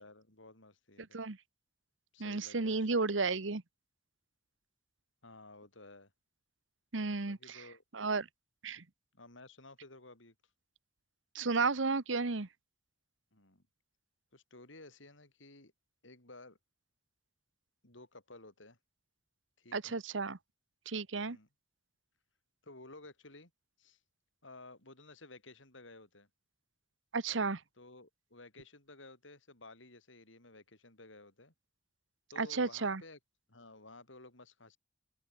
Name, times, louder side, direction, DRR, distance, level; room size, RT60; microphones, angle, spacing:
voice 1, 0.0-1.2 2.1-3.2 5.2-6.1 7.2-7.8 9.1-10.4 13.3-13.6 14.3-15.7 16.0-16.6 17.8-18.8 19.6-20.0 21.3-21.5 22.6-23.5 23.8-24.0 24.4-26.3 27.8-31.5 32.3-33.2 33.5-34.8, left 2 dB, 90° left, 5.7 m, -54 dB
voice 2, 2.2-3.6 6.9-7.4 7.9-8.3 8.6-8.8 11.3-12.5 19.7-20.4 20.9-21.4 27.1-27.6 32.4-33.0, right 4 dB, 85° right, 1.2 m, -33 dB
head